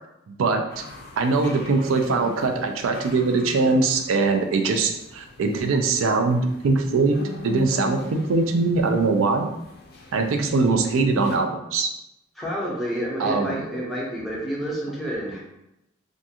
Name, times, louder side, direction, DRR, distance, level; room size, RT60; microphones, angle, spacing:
voice 1, 0.3-0.8 1.2-7.2 7.4-9.5 10.1-11.9 13.2-13.6, right 3 dB, 85° right, 6 dB, 0.4 m, -22 dB
sound 1, 0.7-11.4, left 3 dB, 50° left, 0.4 m, -41 dB
voice 2, 12.4-15.4, equal, ahead, -6 dB, 0.6 m, -29 dB
2.4 x 2.3 x 2.7 m, 0.86 s
head